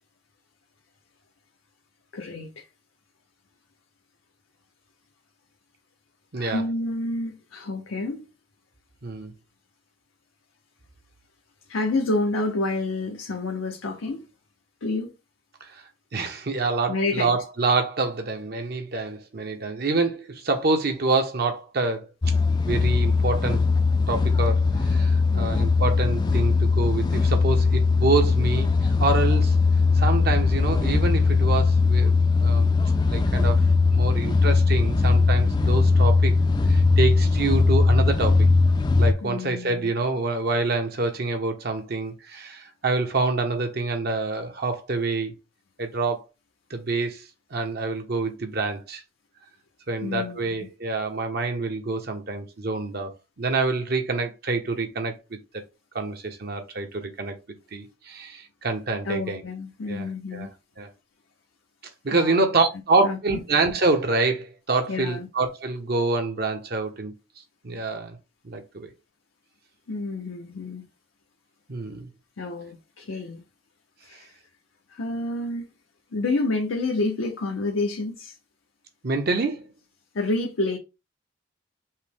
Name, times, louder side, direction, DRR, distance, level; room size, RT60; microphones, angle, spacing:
voice 1, 2.1-2.7 6.3-8.3 11.7-14.3 14.8-15.1 16.9-17.4 25.3-25.7 39.2-39.9 50.0-50.5 59.0-60.5 62.1-62.4 63.0-63.4 64.9-65.3 69.9-70.9 72.4-73.4 74.0-74.4 74.9-75.7 76.1-78.4 80.1-80.8, left 2 dB, 80° left, 0.6 m, -29 dB
voice 2, 9.0-9.3 15.6-15.8 16.1-22.1 22.6-23.6 24.1-29.6 29.9-32.7 33.1-33.6 33.9-36.3 36.7-38.5 39.0-45.3 45.8-46.2 46.7-49.0 49.9-55.2 55.9-57.3 57.7-59.4 59.9-60.1 60.3-60.5 60.8-60.9 62.0-67.1 67.6-68.2 68.4-68.9 71.7-72.1 79.0-79.7, right 3 dB, 50° right, 0.7 m, -26 dB
sound 1, 22.2-39.1, left 4 dB, 20° left, 0.3 m, -20 dB
5.5 x 2.1 x 3.4 m
head